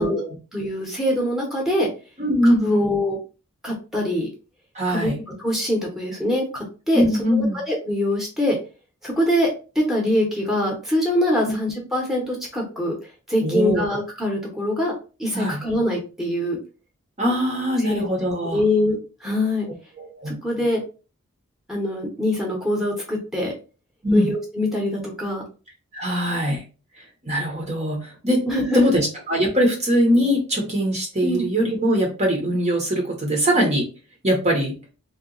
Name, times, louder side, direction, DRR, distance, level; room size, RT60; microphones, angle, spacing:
voice 1, 0.0-0.4 2.2-2.9 4.7-5.1 6.9-7.6 11.4-11.6 13.4-13.8 15.3-15.6 17.2-18.6 20.0-20.4 24.0-24.3 25.9-26.6 27.2-28.4 28.7-33.9 34.2-34.7, equal, 30° right, 0 dB, 0.8 m, -21 dB
voice 2, 0.5-1.9 2.4-3.2 3.6-4.3 4.9-5.1 5.4-7.0 7.3-8.6 9.0-9.5 9.7-12.9 13.3-14.9 15.2-16.6 17.8-18.0 18.5-19.7 20.3-20.8 21.7-23.5 24.1-25.4 28.5-28.8 31.2-31.5, left 1 dB, ahead, -1 dB, 0.9 m, -23 dB
2.8 x 2.3 x 3.8 m, 0.33 s
head